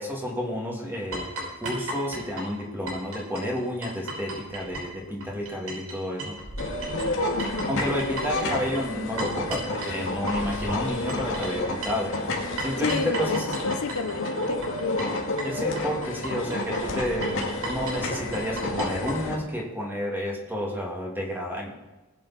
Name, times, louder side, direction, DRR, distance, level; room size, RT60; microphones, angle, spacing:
voice 1, 0.0-6.3 7.7-12.2 12.6-13.6 15.4-21.7, equal, 10° right, -2 dB, 2.6 m, -31 dB
sound 1, 1.1-5.9 6.2-19.2, right 1 dB, 80° right, 5.3 m, -36 dB
sound 2, 6.6-19.4, left 2 dB, 60° left, 2.2 m, -30 dB
voice 2, 7.3-7.7 12.8-15.0, left 3 dB, 80° left, 8 dB, 1.0 m, -31 dB
19.5 x 8.6 x 4.3 m, 1.1 s
head